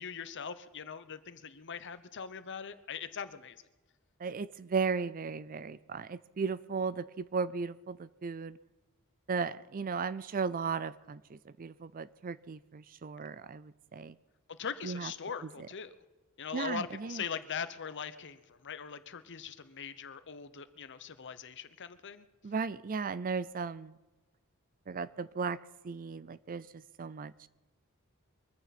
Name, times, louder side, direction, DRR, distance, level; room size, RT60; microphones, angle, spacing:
voice 1, 0.0-3.6 14.5-15.9 16.4-22.3, left 6 dB, 55° left, 12 dB, 0.9 m, -41 dB
voice 2, 4.2-8.6 9.3-14.2 14.8-15.1 16.5-17.2 22.4-24.0 24.9-25.6 25.8-27.5, right 5 dB, 40° right, 17 dB, 0.4 m, -36 dB
23.0 x 15.0 x 4.2 m, 1.2 s
head